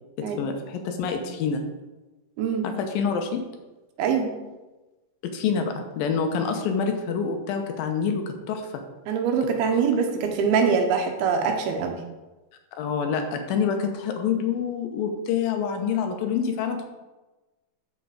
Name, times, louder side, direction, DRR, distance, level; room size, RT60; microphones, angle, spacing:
voice 1, 0.2-1.6 2.6-3.4 5.2-8.8 12.7-16.8, left 6 dB, 80° left, 5 dB, 2.6 m, -27 dB
voice 2, 2.4-2.7 4.0-4.3 9.1-12.0, right 6 dB, 85° right, 4 dB, 3.0 m, -23 dB
13.5 x 4.5 x 5.0 m, 1.1 s
omnidirectional pair, 4.3 m